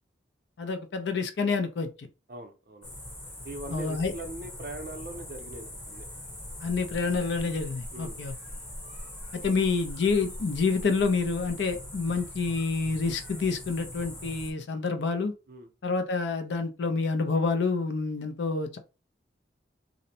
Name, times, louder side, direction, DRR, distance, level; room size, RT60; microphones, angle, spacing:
voice 1, 0.6-1.9 3.7-4.1 6.6-8.3 9.4-15.3 15.8-18.8, left 4 dB, 75° left, 0.5 m, -28 dB
voice 2, 2.3-3.0 3.4-6.1 7.9-8.2 9.4-9.6 15.5-15.7, right 1 dB, 50° right, 0.5 m, -41 dB
sound 1, 2.8-14.5, left 1 dB, 10° left, 0.7 m, -41 dB
2.5 x 2.0 x 2.7 m
head